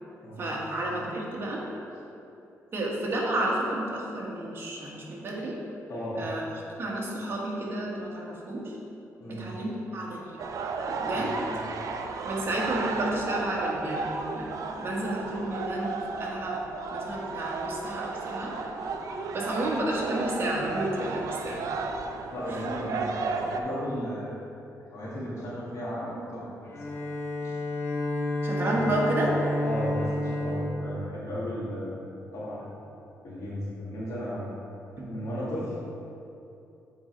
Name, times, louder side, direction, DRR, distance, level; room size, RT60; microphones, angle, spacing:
voice 1, 0.4-1.6 2.7-5.6 6.1-6.4 6.8-8.8 9.3-10.4 10.9-11.5 12.2-16.6 16.9-18.5 19.3-21.7 22.5-22.6 28.4-29.3 35.0-35.1, right 1 dB, 40° right, -4 dB, 1.4 m, -31 dB
voice 2, 5.9-6.3 9.2-9.4 11.1-11.7 22.3-24.4 24.9-26.4 27.4-27.6 28.7-28.8 29.6-32.0 32.3-32.7 33.2-34.5 35.0-35.7, equal, 65° left, -8 dB, 1.7 m, -35 dB
sound 1, 10.4-23.6, right 4 dB, 70° right, 0.5 m, -33 dB
Bowed string instrument, 26.6-31.9, left 1 dB, 40° left, 0.8 m, -31 dB
8.4 x 3.9 x 4.4 m, 2.7 s
cardioid pair, 120°, 6 cm